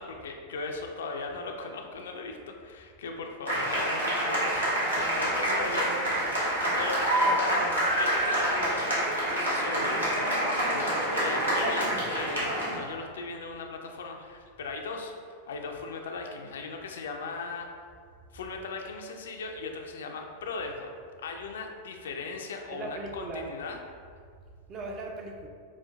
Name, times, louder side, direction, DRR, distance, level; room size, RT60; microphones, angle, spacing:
voice 1, 0.0-5.9 6.7-7.6 8.0-15.1 15.5-17.7 18.3-20.9 21.2-23.8, left 4 dB, 60° left, 3 dB, 0.3 m, -38 dB
sound 1, 3.5-12.8, right 1 dB, 80° right, 0.9 m, -27 dB
voice 2, 5.4-6.5 7.2-7.8 22.7-23.5 24.7-25.5, right 2 dB, 35° right, 2 dB, 0.4 m, -39 dB
5.0 x 2.4 x 2.3 m, 2.1 s
figure-of-eight pair, 90°, 0 cm